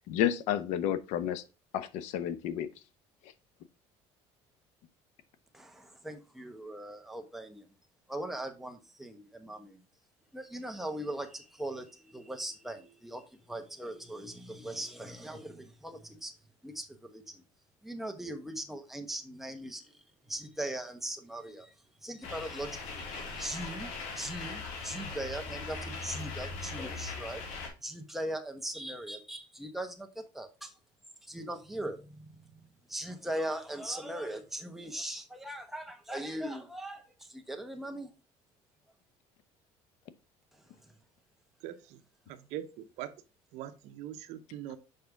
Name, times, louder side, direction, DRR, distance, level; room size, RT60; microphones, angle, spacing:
voice 1, 0.1-1.4 1.7-2.7, left 10 dB, 75° left, 0.8 m, -31 dB
voice 2, 5.5-7.6 8.1-9.8 10.3-13.2 13.5-16.3 16.6-17.3 17.8-19.8 20.3-21.7 22.0-27.4 27.8-30.1 30.3-30.7 31.3-32.0 32.9-37.1 37.3-38.1, right 1 dB, ahead, 1.0 m, -39 dB
sound 1, 22.2-27.7, left 4 dB, 90° left, 3.2 m, -40 dB
voice 3, 41.6-42.0 42.3-43.1 43.5-44.8, right 11 dB, 70° right, 0.8 m, -42 dB
6.6 x 5.2 x 3.4 m
cardioid pair, 140°, 12 cm